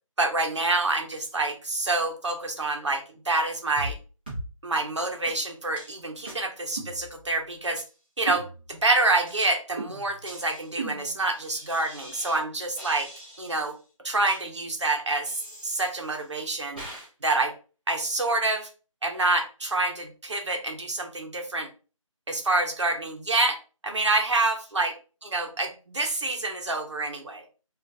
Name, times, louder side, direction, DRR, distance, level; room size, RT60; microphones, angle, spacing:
voice 1, 0.2-4.0 4.6-7.8 8.2-13.1 13.4-13.7 14.0-15.3 15.6-16.8 17.2-17.5 17.9-18.7 19.0-21.7 22.3-23.6 23.8-24.9 25.2-27.4, right 2 dB, 55° right, 3 dB, 0.9 m, -27 dB
sound 1, 3.8-4.0 4.3-4.5 4.8-4.9 5.3-5.4 5.8-5.9 6.3-6.4 6.8-7.4 7.8-7.9 8.3-8.9 9.3-9.4 9.8-12.4 12.8-13.7 14.3-14.4 15.3-16.2 16.8-17.1, right 2 dB, 15° right, 0.8 m, -39 dB
3.6 x 2.5 x 2.7 m, 0.35 s
figure-of-eight pair, 175°, 17 cm